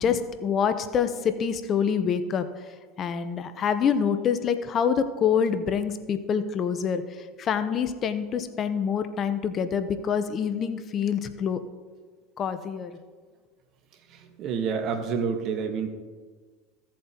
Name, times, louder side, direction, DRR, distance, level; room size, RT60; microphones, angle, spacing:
voice 1, 0.0-2.5 3.0-7.0 7.4-11.6 12.4-13.0, left 7 dB, 40° left, 10 dB, 0.8 m, -26 dB
voice 2, 14.4-15.9, right 6 dB, 55° right, 7 dB, 1.3 m, -28 dB
15.5 x 7.5 x 2.9 m, 1.5 s
hypercardioid pair, 95°, 0 cm